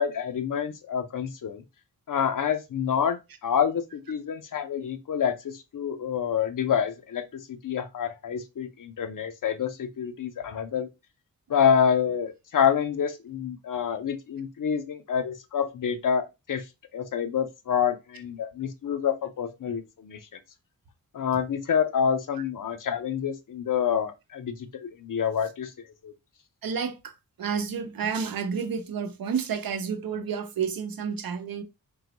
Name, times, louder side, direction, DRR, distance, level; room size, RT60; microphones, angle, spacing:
voice 1, 0.0-1.6 2.1-10.9 11.5-16.6 16.9-20.2 21.1-25.7 26.0-26.1, left 7 dB, 65° left, 0.6 m, -27 dB
voice 2, 26.6-31.6, right 6 dB, 85° right, 0.7 m, -30 dB
3.8 x 3.0 x 2.9 m
wide cardioid pair, 170°, 34 cm